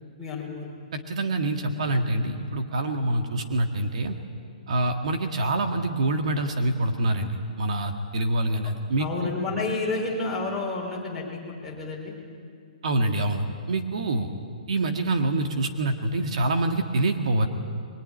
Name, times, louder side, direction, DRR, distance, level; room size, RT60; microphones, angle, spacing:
voice 1, 0.2-0.7 9.0-12.1, left 3 dB, ahead, -6 dB, 4.4 m, -30 dB
voice 2, 0.9-4.2 4.7-9.3 12.8-14.3 14.7-17.5, right 2 dB, 55° right, 5 dB, 1.9 m, -26 dB
23.0 x 22.5 x 9.9 m, 2.3 s
hypercardioid pair, 175°, 4 cm